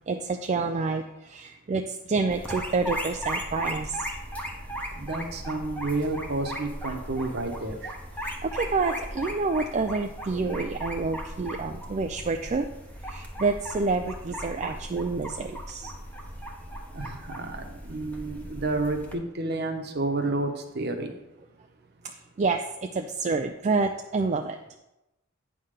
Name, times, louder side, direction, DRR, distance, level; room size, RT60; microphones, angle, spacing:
voice 1, 0.1-4.1 8.2-12.7 13.0-15.9 22.0-24.6, right 4 dB, 35° right, 5 dB, 0.3 m, -28 dB
sound 1, 2.3-19.1, equal, 5° left, 0.9 m, -37 dB
voice 2, 4.9-7.9 16.9-21.1, right 2 dB, 50° right, 5 dB, 1.0 m, -30 dB
9.2 x 3.8 x 6.5 m, 0.93 s
head